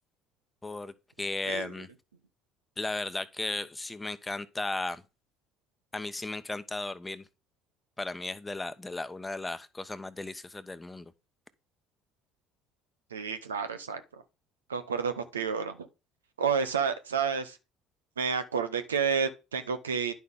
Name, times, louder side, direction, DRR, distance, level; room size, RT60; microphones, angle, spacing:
voice 1, 0.6-1.9 2.8-5.0 5.9-7.2 8.0-11.1, left 2 dB, 15° left, 0.9 m, -35 dB
voice 2, 13.1-14.2 14.7-15.9 16.4-17.6 18.2-20.1, right 6 dB, 85° right, 0.8 m, -30 dB
10.5 x 5.8 x 3.7 m
hypercardioid pair, 60°, 0 cm